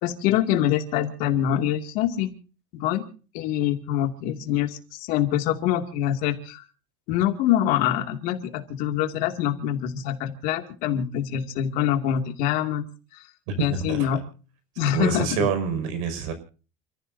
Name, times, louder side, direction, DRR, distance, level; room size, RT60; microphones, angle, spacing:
voice 1, 0.0-2.3 2.7-3.1 3.3-6.6 7.1-12.8 13.1-13.2 13.5-14.2 14.8-15.4, left 11 dB, 60° left, 6 dB, 2.4 m, -25 dB
voice 2, 14.9-16.3, right 6 dB, 85° right, 9 dB, 5.8 m, -26 dB
29.0 x 14.0 x 2.7 m, 0.37 s
cardioid pair, 170°, 16 cm